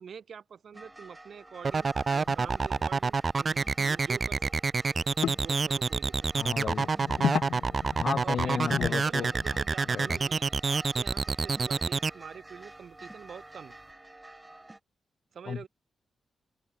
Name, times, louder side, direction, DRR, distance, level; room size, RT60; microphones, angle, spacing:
voice 1, 0.0-4.5 5.4-6.5 8.2-13.7 15.3-15.7, right 7 dB, 50° right, 8.0 m, -46 dB
sound 1, 0.7-14.8, right 2 dB, 10° right, 7.1 m, -50 dB
sound 2, 1.6-12.1, right 4 dB, 30° right, 2.0 m, -27 dB
sound 3, 2.3-2.5 2.8-2.9 3.7-3.8 4.1-4.2 5.2-5.4 6.7-9.7 11.6-11.7, left 9 dB, 85° left, 1.0 m, -34 dB
voice 2, 6.4-6.9 8.0-9.3 9.9-10.1 15.5-15.7, left 7 dB, 55° left, 1.1 m, -33 dB
open air
wide cardioid pair, 165°, 0 cm